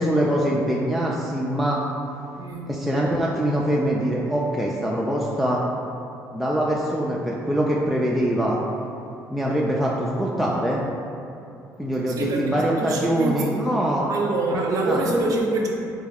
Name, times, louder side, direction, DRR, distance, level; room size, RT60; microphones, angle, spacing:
voice 1, 0.0-1.8 2.7-5.6 6.3-8.6 9.3-10.8 11.8-14.1 14.5-15.0, equal, ahead, -4 dB, 0.3 m, -23 dB
voice 2, 2.4-2.8 12.1-13.6 14.1-15.7, right 2 dB, 55° right, 0 dB, 0.5 m, -25 dB
3.3 x 2.3 x 3.3 m, 2.7 s
supercardioid pair, 80°, 7 cm